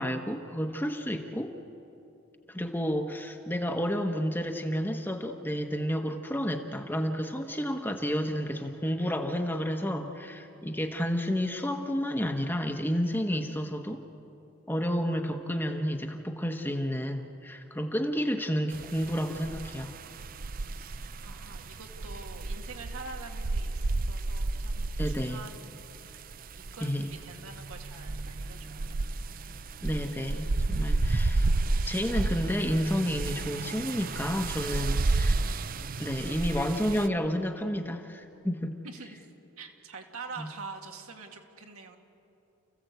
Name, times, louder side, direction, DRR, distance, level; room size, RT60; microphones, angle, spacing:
voice 1, 0.0-1.6 2.5-14.0 14.7-19.9 25.0-25.4 26.8-27.1 29.8-31.5 31.8-35.4 36.0-38.8 40.4-40.5, equal, 10° left, 4 dB, 1.0 m, -30 dB
voice 2, 11.0-11.6 18.4-18.6 20.7-26.3 26.6-29.2 38.8-39.3 39.6-42.0, right 4 dB, 80° right, 3 dB, 2.2 m, -46 dB
sound 1, 18.7-37.1, right 2 dB, 40° right, 0.5 m, -32 dB
29.5 x 15.5 x 8.2 m, 2.9 s
head